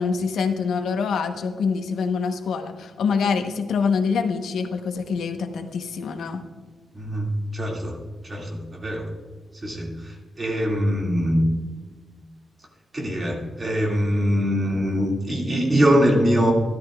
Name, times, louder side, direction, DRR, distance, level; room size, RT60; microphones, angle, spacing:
voice 1, 0.0-6.4, left 5 dB, 85° left, 6 dB, 0.9 m, -25 dB
voice 2, 6.9-7.9 8.3-9.1 9.6-9.9 10.4-11.5 12.9-16.5, equal, 25° right, -1 dB, 2.1 m, -22 dB
13.5 x 12.5 x 2.3 m, 1.4 s
wide cardioid pair, 165°, 0 cm